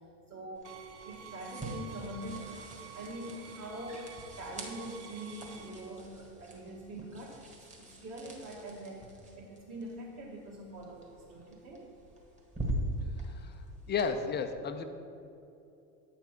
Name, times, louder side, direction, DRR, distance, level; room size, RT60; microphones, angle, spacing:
voice 1, 0.3-0.7 1.0-11.9, right 1 dB, 30° right, -6 dB, 1.6 m, -44 dB
sound 1, 0.5-14.1, right 1 dB, 15° right, 1.5 m, -43 dB
sound 2, 0.6-5.7, right 8 dB, 55° right, 0.9 m, -50 dB
voice 2, 13.2-13.6 13.9-14.8, left 5 dB, 20° left, 8 dB, 0.5 m, -33 dB
8.5 x 5.9 x 4.4 m, 2.7 s
hypercardioid pair, 95°, 49 cm